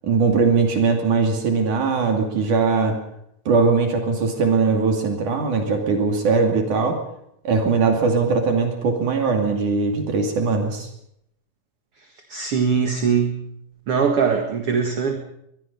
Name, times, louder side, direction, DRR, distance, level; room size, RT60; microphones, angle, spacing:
voice 1, 0.0-3.0 3.5-7.0 7.5-10.9, right 4 dB, 65° right, 4 dB, 4.0 m, -20 dB
voice 2, 12.3-13.4 13.9-15.2, right 6 dB, 50° right, 5 dB, 2.3 m, -21 dB
23.0 x 22.5 x 5.4 m, 0.74 s
omnidirectional pair, 3.9 m